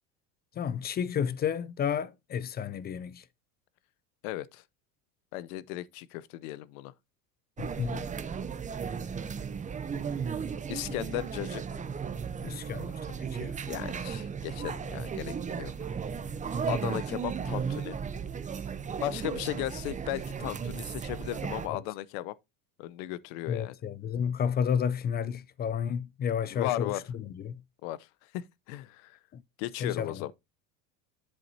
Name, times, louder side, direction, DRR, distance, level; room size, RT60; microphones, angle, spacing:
voice 1, 0.6-3.2 7.6-8.0 12.4-13.6 21.7-21.8 23.5-27.6 29.3-29.4 29.8-30.2, left 7 dB, 25° left, 0.4 m, -32 dB
voice 2, 4.2-4.6 5.3-6.9 10.7-11.6 13.7-15.7 16.7-18.0 19.0-22.4 22.8-23.7 26.5-27.0 27.8-28.1 28.3-29.2 29.6-30.3, left 15 dB, 65° left, 0.8 m, -36 dB
sound 1, 7.6-21.7, right 6 dB, 15° right, 0.6 m, -35 dB
7.8 x 7.5 x 2.7 m
supercardioid pair, 100°, 45 cm